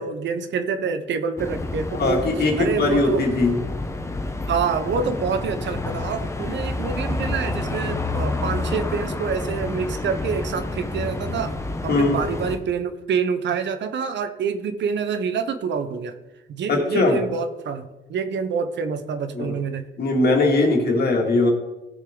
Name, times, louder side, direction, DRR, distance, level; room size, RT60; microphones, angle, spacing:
voice 1, 0.0-3.3 4.5-11.6 11.8-16.2 16.5-19.9, right 6 dB, 65° right, 10 dB, 0.9 m, -27 dB
sound 1, 1.4-12.6, left 2 dB, 15° left, 1.0 m, -29 dB
voice 2, 2.0-3.6 11.9-12.2 16.7-17.2 19.3-19.5 20.0-21.5, left 3 dB, 55° left, 0 dB, 2.7 m, -20 dB
16.0 x 6.4 x 3.9 m, 1.1 s
cardioid pair, 90°, 20 cm